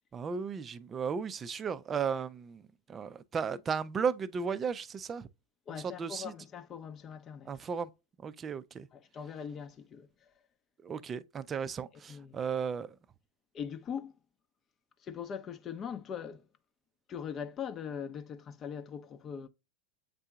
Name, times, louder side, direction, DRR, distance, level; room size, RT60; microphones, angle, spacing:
voice 1, 0.1-2.6 2.9-5.3 6.0-6.3 7.5-7.9 8.2-8.9 10.8-13.0, right 6 dB, 25° right, 0.5 m, -35 dB
voice 2, 5.7-7.5 8.9-10.3 12.1-12.4 13.5-14.1 15.0-16.5 17.1-19.5, left 7 dB, 35° left, 0.7 m, -41 dB
7.4 x 2.7 x 2.3 m
hypercardioid pair, 95°, 0 cm